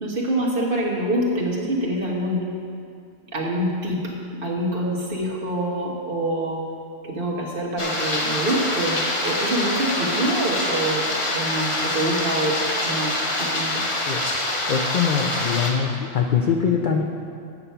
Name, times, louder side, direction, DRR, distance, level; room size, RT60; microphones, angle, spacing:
voice 1, 0.0-2.4 3.3-4.1 4.4-6.6 7.0-11.1 11.3-12.6 12.9-13.1 13.4-13.8, right 1 dB, 45° right, -3 dB, 1.4 m, -25 dB
sound 1, 7.8-15.7, left 1 dB, 25° left, 0.8 m, -25 dB
voice 2, 14.7-17.0, left 7 dB, 55° left, 2 dB, 0.5 m, -22 dB
8.4 x 6.8 x 5.6 m, 2.4 s
omnidirectional pair, 1.4 m